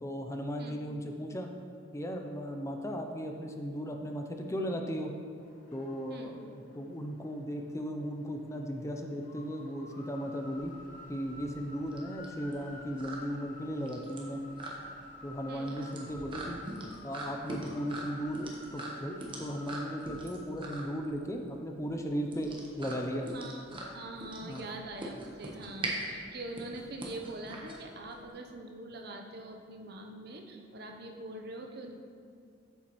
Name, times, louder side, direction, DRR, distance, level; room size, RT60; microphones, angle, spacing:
voice 1, 0.0-1.5 1.9-5.1 5.7-10.7 11.1-14.4 15.2-16.6 17.0-23.3 24.4-24.6, equal, 15° left, 4 dB, 0.4 m, -36 dB
voice 2, 0.6-1.0 6.1-6.4 15.5-15.8 23.3-32.0, right 2 dB, 55° right, 3 dB, 0.7 m, -44 dB
sound 1, 5.4-20.3, left 1 dB, 45° left, 1.2 m, -52 dB
sound 2, 10.5-28.3, right 2 dB, 25° right, 1.0 m, -42 dB
8.0 x 7.5 x 3.0 m, 2.2 s
head